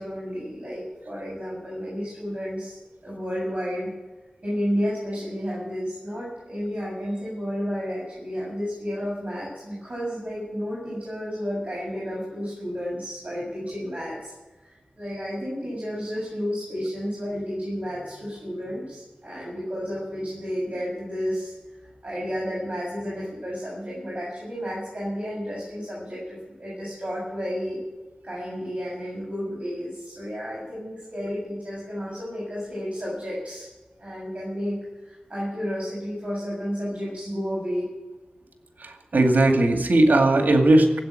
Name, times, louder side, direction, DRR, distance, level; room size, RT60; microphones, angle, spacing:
voice 1, 0.0-2.8 3.0-3.9 4.4-14.3 14.6-21.5 22.0-27.8 28.2-33.7 34.0-37.9, equal, 45° right, -6 dB, 7.2 m, -31 dB
voice 2, 38.8-41.0, right 2 dB, 80° right, 4 dB, 2.3 m, -18 dB
16.5 x 8.6 x 8.9 m, 1.2 s
cardioid pair, 45°, 3 cm